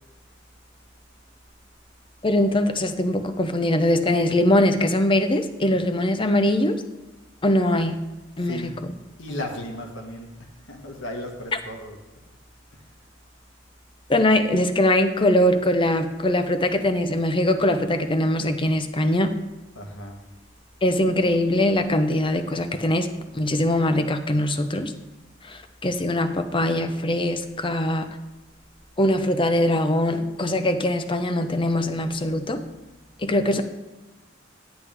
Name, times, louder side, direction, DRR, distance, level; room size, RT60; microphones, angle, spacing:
voice 1, 2.2-6.8 7.4-8.0 8.4-8.9 14.1-19.4 20.8-24.9 25.4-28.2 29.0-32.6 33.2-33.6, left 1 dB, 25° left, 8 dB, 0.8 m, -22 dB
voice 2, 8.4-8.8 9.2-10.3 10.7-12.0 19.8-20.2, left 1 dB, 80° left, 2 dB, 1.7 m, -35 dB
10.5 x 10.0 x 3.5 m, 1.1 s
head